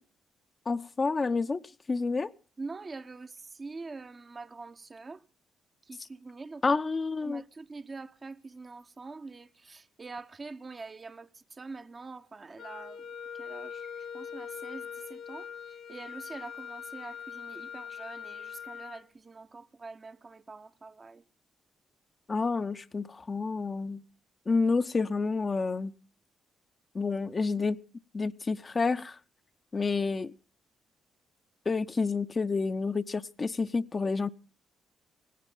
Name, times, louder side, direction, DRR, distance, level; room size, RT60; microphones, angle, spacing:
voice 1, 0.7-1.6 1.9-2.3 6.6-7.4 22.3-24.0 24.5-25.9 26.9-27.8 28.1-29.2 29.7-30.3 31.7-34.3, left 4 dB, 35° left, 0.6 m, -29 dB
voice 2, 2.6-5.2 5.8-6.8 7.2-13.0 13.4-15.5 15.9-21.2, right 3 dB, 35° right, 0.8 m, -44 dB
Wind instrument woodwind instrument, 12.6-19.0, left 7 dB, 60° left, 1.0 m, -42 dB
18.0 x 17.0 x 3.7 m
figure-of-eight pair, 40°, 0 cm